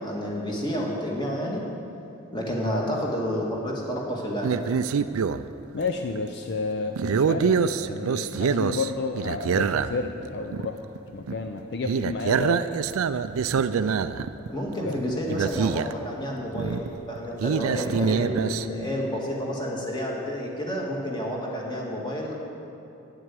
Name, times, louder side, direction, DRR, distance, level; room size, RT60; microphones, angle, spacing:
voice 1, 0.0-1.6 2.3-4.5 14.5-22.3, equal, 20° left, -2 dB, 1.8 m, -30 dB
sound 1, 4.4-5.4 6.0-6.2 7.0-10.2 10.5-10.7 11.0-11.1 11.3-11.6 11.9-14.5 15.0-15.1 15.3-16.1 16.6-18.7, right 6 dB, 85° right, 0.4 m, -25 dB
voice 2, 5.7-10.8 11.1-12.6 14.8-15.2, left 4 dB, 55° left, 5 dB, 0.5 m, -31 dB
9.7 x 7.8 x 8.3 m, 2.9 s
head